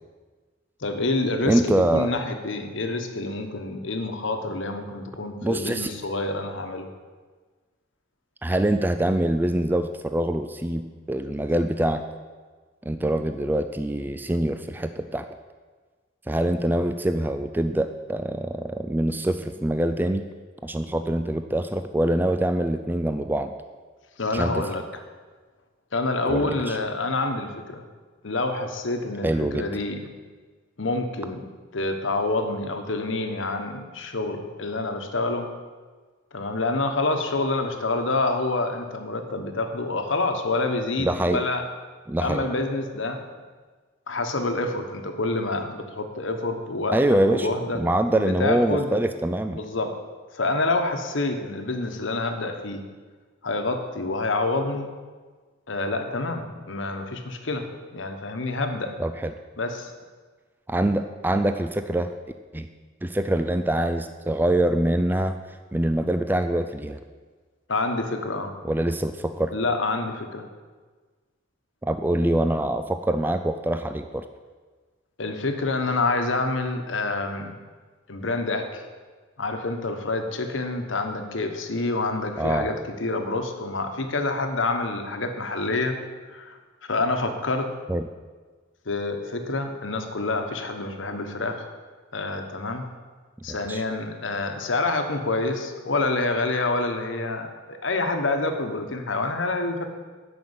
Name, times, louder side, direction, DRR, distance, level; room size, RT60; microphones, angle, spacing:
voice 1, 0.8-6.9 24.2-24.8 25.9-27.8 28.2-30.0 30.8-31.5 31.7-35.5 36.3-41.7 42.2-43.2 44.1-47.8 48.1-48.9 49.5-50.0 50.3-52.8 53.4-54.9 55.7-58.9 59.6-59.9 67.7-68.5 69.5-70.5 75.2-77.6 78.1-78.8 79.4-86.0 86.3-86.6 86.9-87.7 88.8-91.6 92.1-92.8 93.4-99.9, left 2 dB, 85° left, 6 dB, 1.2 m, -27 dB
voice 2, 1.5-2.1 5.4-5.9 8.4-12.0 12.9-15.2 16.3-20.2 20.6-23.5 24.3-24.6 26.3-26.8 29.2-29.7 41.0-41.4 42.1-42.5 46.9-47.5 47.8-49.6 59.0-59.3 60.7-62.1 62.5-62.7 63.0-65.4 65.7-67.0 68.6-69.5 71.8-74.3 82.4-82.7 87.9-88.1 93.5-93.8, right 1 dB, 10° right, 8 dB, 0.3 m, -24 dB
9.6 x 6.2 x 8.1 m, 1.4 s
head